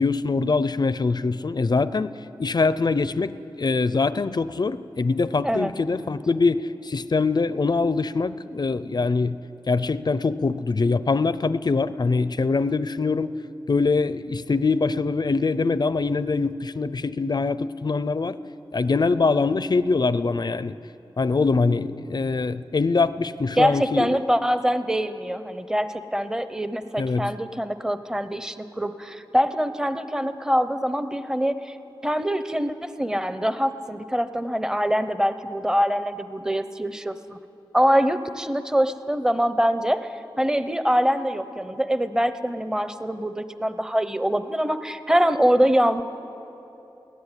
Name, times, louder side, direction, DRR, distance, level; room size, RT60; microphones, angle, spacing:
voice 1, 0.0-2.1 2.4-9.4 9.7-13.3 13.7-18.4 18.7-20.7 21.2-24.2 27.0-27.3, left 4 dB, 50° left, 14 dB, 0.6 m, -23 dB
voice 2, 23.6-31.8 32.0-37.4 37.7-46.0, equal, 5° right, 11 dB, 0.8 m, -24 dB
22.0 x 17.0 x 9.9 m, 2.9 s
wide cardioid pair, 100°, 9 cm